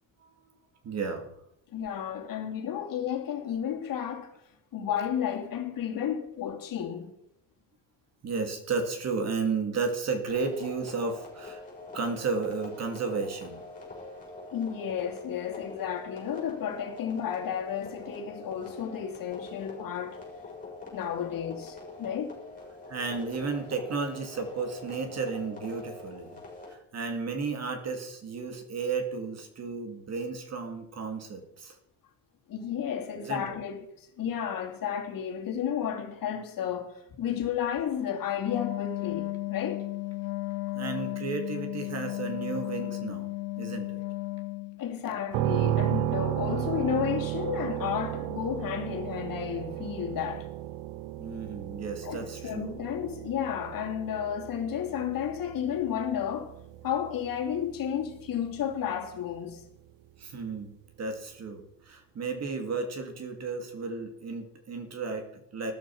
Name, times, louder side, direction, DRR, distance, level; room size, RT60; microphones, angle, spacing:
voice 1, 0.8-1.3 8.2-11.6 11.9-13.6 22.9-26.4 26.7-31.8 33.2-33.6 40.8-43.3 43.6-44.0 51.1-52.8 60.2-65.7, right 4 dB, 35° right, 2.4 m, -33 dB
voice 2, 1.7-4.3 4.7-7.1 14.5-20.2 20.9-22.3 32.5-39.8 44.8-50.5 52.0-56.6 56.8-59.6, left 9 dB, 50° left, 2.7 m, -32 dB
sound 1, 10.3-26.7, left 3 dB, 20° left, 6.2 m, -45 dB
Wind instrument woodwind instrument, 38.3-44.8, left 20 dB, 70° left, 1.2 m, -34 dB
sound 2, 45.3-59.1, right 14 dB, 75° right, 0.7 m, -34 dB
13.5 x 13.0 x 6.0 m
cardioid pair, 180°, 44 cm